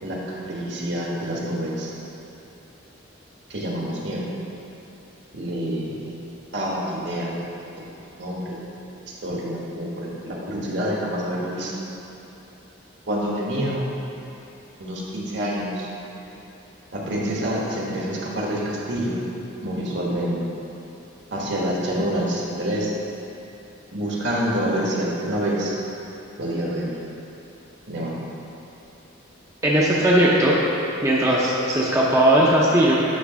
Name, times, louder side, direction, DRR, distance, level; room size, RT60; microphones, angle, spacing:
voice 1, 0.0-1.9 3.5-4.2 5.3-6.2 6.5-7.3 8.2-8.5 9.2-11.7 13.1-13.9 14.8-15.9 16.9-19.3 19.6-20.4 21.3-22.9 23.9-25.8 26.4-26.9 27.9-28.1, equal, 60° right, -4 dB, 1.4 m, -27 dB
voice 2, 29.6-30.6 31.0-33.0, right 1 dB, 15° right, -6 dB, 0.6 m, -18 dB
9.4 x 3.3 x 6.2 m, 2.9 s
head